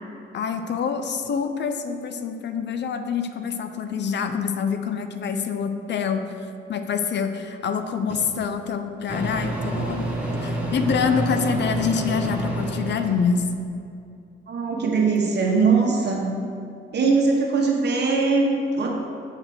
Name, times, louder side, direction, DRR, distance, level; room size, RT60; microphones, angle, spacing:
voice 1, 0.3-10.1 10.4-13.5, left 6 dB, 60° left, 8 dB, 0.6 m, -26 dB
Microwave oven, 8.1-8.2 9.1-13.4, right 1 dB, 5° right, 1.4 m, -28 dB
voice 2, 14.5-16.3 16.9-19.0, right 4 dB, 55° right, -1 dB, 1.4 m, -21 dB
6.5 x 4.8 x 6.2 m, 2.5 s
cardioid pair, 95°, 21 cm